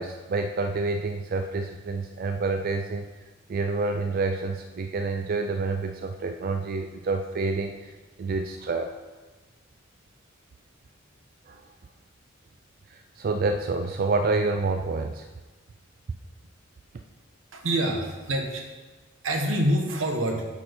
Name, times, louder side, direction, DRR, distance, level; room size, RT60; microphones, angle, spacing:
voice 1, 0.0-3.1 3.5-8.9 11.5-11.6 12.9-15.3, right 3 dB, 45° right, 6 dB, 0.4 m, -28 dB
voice 2, 17.5-18.6 19.2-20.5, right 1 dB, 80° right, 3 dB, 1.1 m, -26 dB
8.4 x 4.3 x 5.1 m, 1.2 s
head